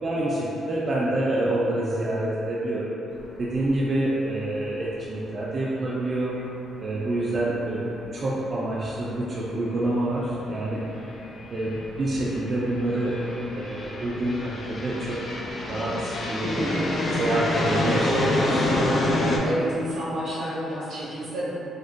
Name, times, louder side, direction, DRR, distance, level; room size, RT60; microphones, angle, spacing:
voice 1, 0.0-2.9 3.4-6.3 6.8-7.9 8.1-10.8 11.5-13.2 13.5-15.2 15.7-18.7, right 1 dB, 45° right, -7 dB, 0.3 m, -27 dB
sound 1, 3.2-3.4 3.7-3.8 7.8-7.9 9.0-9.2 9.8-19.4, left 1 dB, 50° left, 0.3 m, -28 dB
voice 2, 16.4-16.8 19.4-21.5, equal, 80° right, -10 dB, 1.0 m, -29 dB
2.5 x 2.1 x 2.4 m, 2.9 s
cardioid pair, 90°, 0 cm